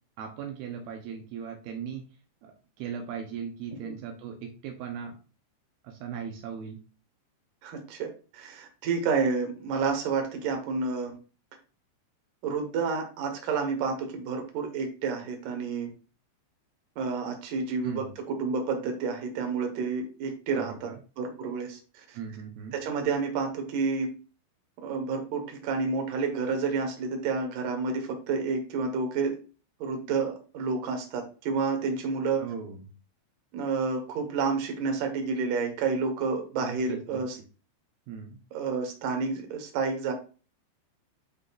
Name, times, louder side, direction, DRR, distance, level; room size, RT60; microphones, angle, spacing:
voice 1, 0.2-2.0 2.4-2.5 2.8-5.2 5.8-6.8 17.8-18.1 20.5-21.0 22.1-22.8 32.4-32.9 36.6-37.2 38.1-38.4, right 7 dB, 85° right, 3 dB, 2.2 m, -38 dB
voice 2, 7.6-11.2 12.4-15.9 17.0-20.9 21.2-22.2 22.7-24.1 24.8-29.4 29.8-32.4 33.5-37.4 38.5-40.1, right 4 dB, 65° right, 4 dB, 2.2 m, -30 dB
11.5 x 3.9 x 2.5 m, 0.35 s
omnidirectional pair, 5.6 m